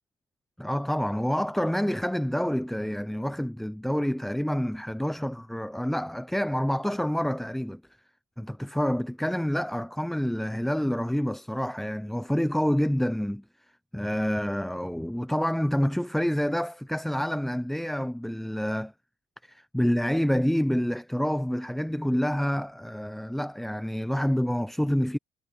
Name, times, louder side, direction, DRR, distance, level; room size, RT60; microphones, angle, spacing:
voice 1, 0.6-7.8 8.4-13.4 13.9-18.9 19.4-25.2, equal, ahead, 0.4 m, -28 dB
cardioid pair, 110°, 17 cm